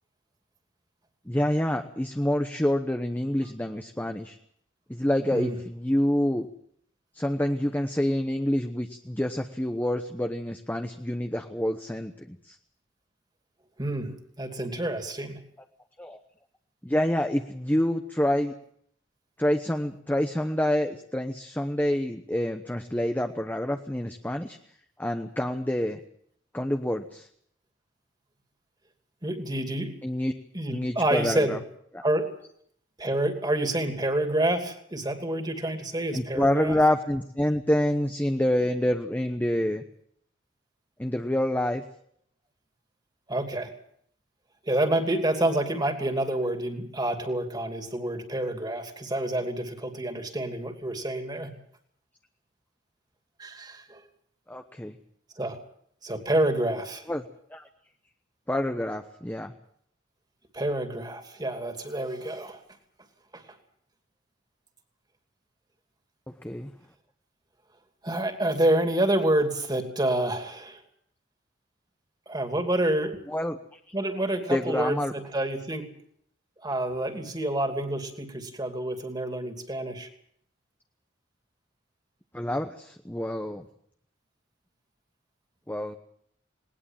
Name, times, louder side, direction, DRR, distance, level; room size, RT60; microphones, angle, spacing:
voice 1, 1.3-4.4 4.9-6.5 7.1-12.6 16.0-16.2 16.8-18.5 19.4-24.6 25.0-26.0 26.5-27.3 30.0-30.3 30.7-31.6 31.9-32.0 36.1-39.8 41.0-41.8 54.5-55.0 57.1-57.3 57.5-57.6 58.5-59.5 66.4-66.7 73.3-73.8 74.5-75.1 82.3-83.7 85.7-85.9, left 1 dB, 10° left, 6 dB, 1.0 m, -27 dB
voice 2, 13.8-15.4 29.2-29.9 30.5-31.5 32.0-32.3 33.0-36.7 43.3-43.7 44.6-51.5 53.4-54.0 55.4-55.6 56.0-57.1 60.5-62.6 63.3-63.4 68.0-70.8 72.3-73.2 73.9-75.9 76.6-80.1, right 1 dB, 20° right, 6 dB, 2.8 m, -28 dB
20.0 x 19.5 x 7.5 m, 0.66 s
head